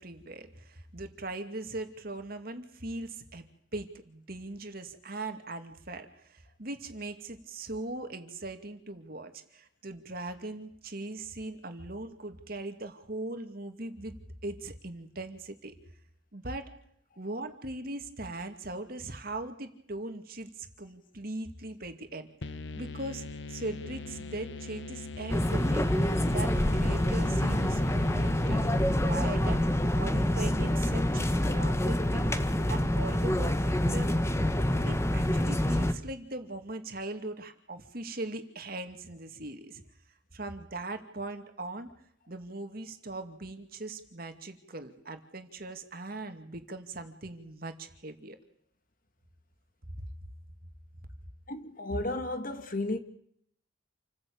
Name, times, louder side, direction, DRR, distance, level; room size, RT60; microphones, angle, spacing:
voice 1, 0.0-3.5 3.7-14.1 14.4-15.7 16.3-16.7 17.2-22.3 22.7-25.9 26.3-32.3 32.7-34.2 34.8-39.8 40.3-41.9 42.3-48.4, right 2 dB, 50° right, 2.4 m, -40 dB
sound 1, 22.4-30.1, left 3 dB, 70° left, 1.1 m, -42 dB
sound 2, 25.3-35.9, left 1 dB, 15° left, 1.4 m, -27 dB
voice 2, 51.5-53.0, left 2 dB, 45° left, 2.1 m, -33 dB
28.0 x 15.5 x 8.7 m
head